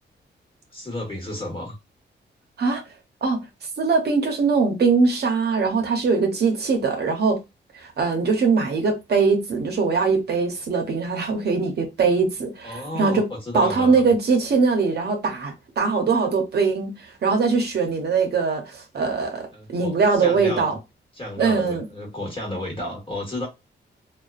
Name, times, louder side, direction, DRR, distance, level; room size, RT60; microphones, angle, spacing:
voice 1, 0.7-1.8 12.6-14.1 19.5-20.7 21.1-23.5, left 1 dB, 30° left, 1.3 m, -32 dB
voice 2, 3.8-7.4 7.7-13.2 13.5-16.9 17.2-20.7 21.4-21.8, right 4 dB, 60° right, 0.7 m, -21 dB
2.4 x 2.2 x 2.3 m
cardioid pair, 105°, 19 cm